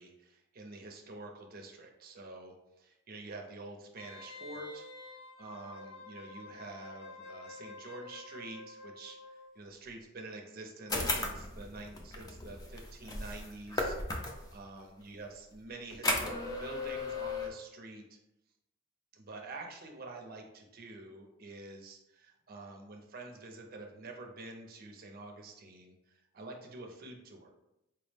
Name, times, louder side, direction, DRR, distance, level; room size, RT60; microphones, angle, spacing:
voice 1, 0.0-4.9 5.4-14.0 14.5-18.2 19.1-27.5, right 2 dB, 45° right, 3 dB, 0.5 m, -47 dB
Wind instrument woodwind instrument, 4.0-9.5 9.8-9.9, left 3 dB, 65° left, 0.6 m, -49 dB
sound 1, 10.9-14.5 15.9-17.5, left 2 dB, 15° left, 0.4 m, -35 dB
4.6 x 2.0 x 3.2 m, 0.87 s
head